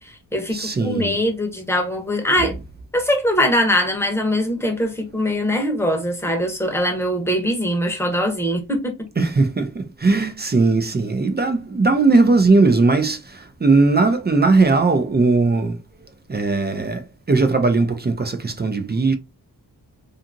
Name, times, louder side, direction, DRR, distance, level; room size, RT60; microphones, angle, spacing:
voice 1, 0.0-2.5 2.9-9.1, equal, 5° left, 0.8 m, -22 dB
voice 2, 0.5-1.2 9.2-15.8 16.3-19.1, right 3 dB, 25° right, 0.4 m, -18 dB
2.7 x 2.5 x 2.5 m
wide cardioid pair, 80°, 42 cm